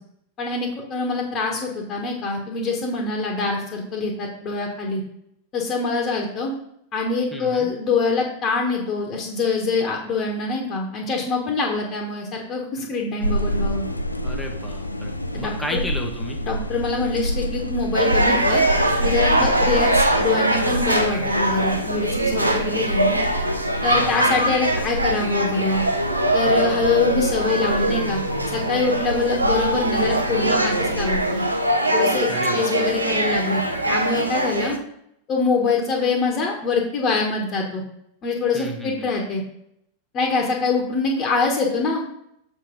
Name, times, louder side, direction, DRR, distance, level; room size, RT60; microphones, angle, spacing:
voice 1, 0.4-5.0 5.5-6.5 6.9-13.9 15.3-15.8 16.4-18.6 19.0-23.2 23.8-25.8 26.3-28.2 28.5-31.4 31.9-34.8 35.3-37.8 38.2-39.4 40.1-42.0, left 4 dB, 30° left, -1 dB, 1.6 m, -24 dB
voice 2, 7.3-7.7 14.2-16.4 19.4-19.7 23.9-24.4 32.3-32.8 38.5-39.1, equal, 5° left, 1 dB, 1.3 m, -33 dB
sound 1, 13.2-31.2, equal, 85° left, 0.5 m, -29 dB
sound 2, 17.9-34.8, right 1 dB, 85° right, 0.8 m, -22 dB
7.2 x 4.4 x 5.4 m, 0.75 s
figure-of-eight pair, 90°, 0 cm